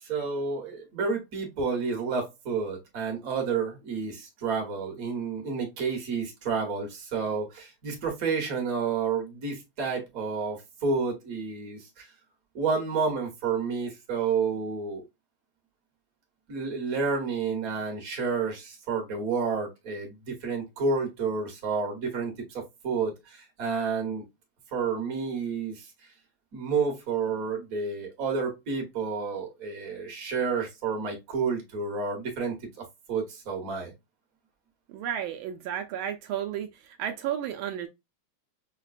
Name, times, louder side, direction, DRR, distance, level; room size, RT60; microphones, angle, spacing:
voice 1, 0.0-12.1 12.5-15.0 16.5-24.2 24.7-25.9 26.5-32.6 33.1-33.9, right 5 dB, 50° right, 1.4 m, -30 dB
voice 2, 34.9-37.9, right 10 dB, 80° right, 1.4 m, -33 dB
5.4 x 2.2 x 2.4 m
omnidirectional pair, 2.3 m